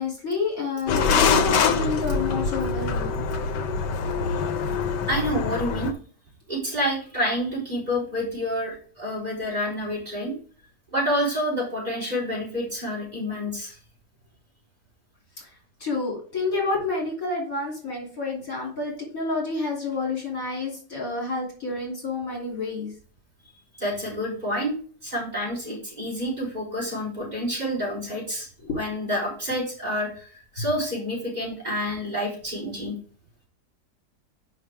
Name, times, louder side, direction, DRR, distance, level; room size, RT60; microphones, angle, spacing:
voice 1, 0.0-3.2 15.4-15.5 15.8-22.9 28.6-28.8, left 3 dB, 50° left, -3 dB, 3.3 m, -29 dB
sound 1, 0.9-5.9, left 5 dB, 80° left, 1.5 m, -24 dB
voice 2, 5.1-5.9 6.5-10.3 10.9-13.8 23.7-24.8 25.0-28.5 28.7-33.0, equal, 25° right, -4 dB, 4.0 m, -28 dB
9.1 x 5.7 x 3.5 m, 0.43 s
omnidirectional pair, 1.8 m